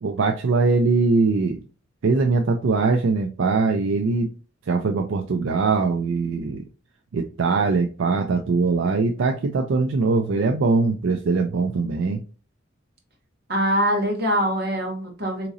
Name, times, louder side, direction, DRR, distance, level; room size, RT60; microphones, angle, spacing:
voice 1, 0.0-1.6 2.0-4.3 4.7-6.7 7.1-12.2, right 4 dB, 75° right, 4 dB, 0.4 m, -21 dB
voice 2, 13.5-15.5, equal, 55° right, 2 dB, 1.2 m, -23 dB
3.8 x 2.9 x 2.5 m, 0.35 s
head